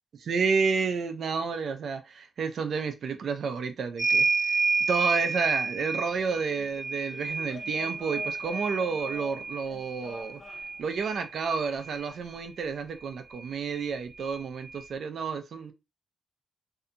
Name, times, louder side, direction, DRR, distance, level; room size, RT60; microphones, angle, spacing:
voice 1, 0.2-4.6 4.9-10.4 10.8-15.7, right 5 dB, 70° right, 0.5 m, -30 dB
sound 1, 4.0-12.1 13.4-13.5 13.7-14.8, right 4 dB, 25° right, 0.7 m, -30 dB
sound 2, 6.2-12.4, left 6 dB, 70° left, 0.8 m, -49 dB
2.7 x 2.2 x 2.5 m
wide cardioid pair, 130°, 0 cm